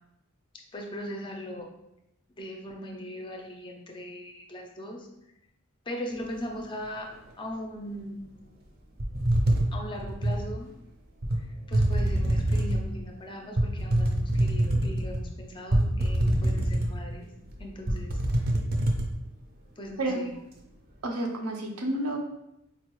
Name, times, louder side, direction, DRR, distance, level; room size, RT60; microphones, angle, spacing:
voice 1, 0.7-1.7 2.4-5.1 5.9-7.1 7.4-8.2 9.7-10.7 11.7-17.3 17.6-18.1 19.8-20.3, equal, 20° left, 2 dB, 0.4 m, -39 dB
sound 1, 9.0-10.4 11.2-11.4 11.7-12.9 13.6-15.2 15.7-17.1 17.5-17.6 17.9-19.1, right 1 dB, 45° right, 0.5 m, -25 dB
voice 2, 21.0-22.2, right 1 dB, 85° right, 1 dB, 0.6 m, -30 dB
4.1 x 2.3 x 3.0 m, 0.84 s
head